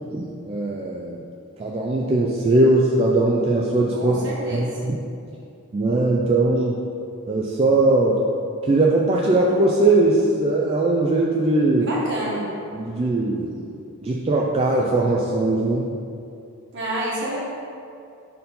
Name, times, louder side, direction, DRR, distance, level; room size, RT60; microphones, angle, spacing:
voice 1, 0.1-1.2 1.6-4.3 4.5-5.0 5.7-6.8 7.3-8.2 8.7-11.9 12.7-13.5 14.0-15.9, right 2 dB, 30° right, -3 dB, 0.4 m, -20 dB
voice 2, 3.9-4.8 11.8-12.5 16.7-17.4, right 1 dB, 55° right, -5 dB, 1.4 m, -28 dB
4.3 x 4.1 x 5.3 m, 2.5 s
head